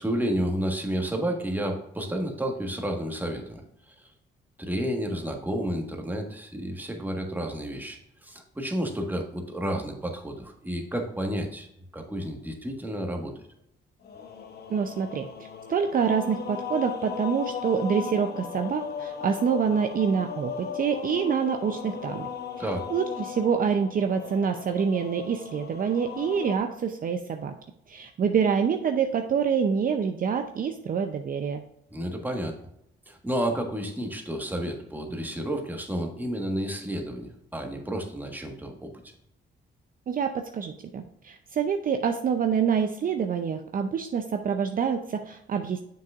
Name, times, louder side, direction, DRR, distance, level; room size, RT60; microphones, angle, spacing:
voice 1, 0.0-4.1 4.6-11.7 11.9-13.3 22.6-22.9 31.9-32.6 33.1-38.9, right 1 dB, 10° right, 2 dB, 1.5 m, -31 dB
sound 1, 14.0-26.6, left 7 dB, 55° left, 1.0 m, -37 dB
voice 2, 14.7-15.3 15.7-22.3 22.9-27.5 27.9-31.6 40.1-45.8, right 6 dB, 45° right, 6 dB, 0.6 m, -26 dB
7.4 x 6.1 x 2.5 m, 0.77 s
cardioid pair, 90°, 20 cm